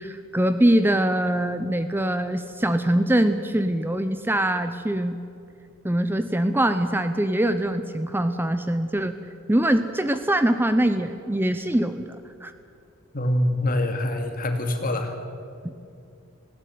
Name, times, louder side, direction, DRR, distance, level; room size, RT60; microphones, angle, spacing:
voice 1, 0.0-5.2 5.8-9.2 9.5-12.2 12.4-12.5 15.6-15.7, right 1 dB, 10° right, 9 dB, 0.7 m, -23 dB
voice 2, 13.1-15.1, left 1 dB, 45° left, 5 dB, 2.3 m, -25 dB
19.0 x 17.0 x 9.3 m, 2.5 s
head